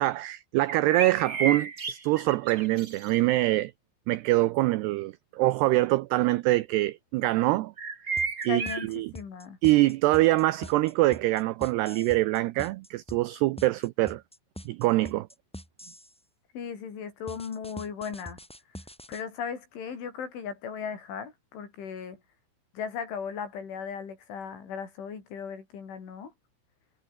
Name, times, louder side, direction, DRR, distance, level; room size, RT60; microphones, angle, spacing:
voice 1, 0.0-3.7 4.1-7.7 8.4-9.1 9.6-14.2 14.7-15.3, right 18 dB, 85° right, 2.3 m, -24 dB
sound 1, 0.7-3.1 7.8-8.9, right 5 dB, 55° right, 0.9 m, -32 dB
sound 2, 8.2-16.2 17.3-19.2, equal, 5° left, 0.7 m, -44 dB
voice 2, 8.5-9.6 16.5-18.4 19.1-22.2 22.7-26.3, left 6 dB, 75° left, 7.4 m, -37 dB
omnidirectional pair, 5.5 m